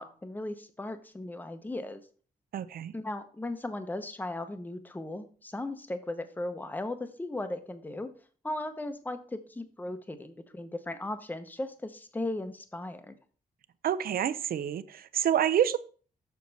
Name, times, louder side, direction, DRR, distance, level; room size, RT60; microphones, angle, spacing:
voice 1, 0.0-2.0 2.9-8.1 8.4-13.1, left 2 dB, 10° left, 9 dB, 0.7 m, -37 dB
voice 2, 2.5-2.9 13.8-15.8, right 10 dB, 70° right, 15 dB, 0.5 m, -28 dB
6.8 x 6.3 x 4.0 m, 0.41 s
wide cardioid pair, 145°, 16 cm